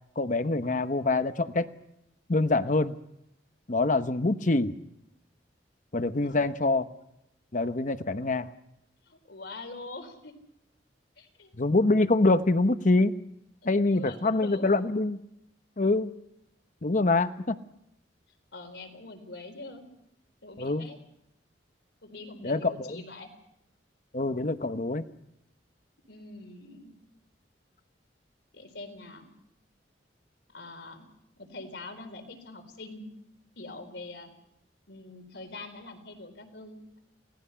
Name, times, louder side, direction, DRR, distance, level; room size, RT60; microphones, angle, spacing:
voice 1, 0.2-1.7 2.3-3.0 3.7-4.7 5.9-6.9 7.5-8.5 11.6-13.1 13.6-15.2 15.8-16.1 16.8-17.6 20.6-20.9 22.4-23.0 24.1-25.1, left 2 dB, 45° left, 11 dB, 0.9 m, -25 dB
voice 2, 9.1-10.4 11.2-11.5 13.6-14.7 18.5-19.8 20.4-21.0 22.0-23.3 26.1-26.9 28.5-29.3 30.5-31.0 31.4-33.1 33.6-34.3 34.9-37.0, left 2 dB, 80° left, 5 dB, 4.1 m, -44 dB
29.0 x 18.5 x 5.8 m, 0.80 s
head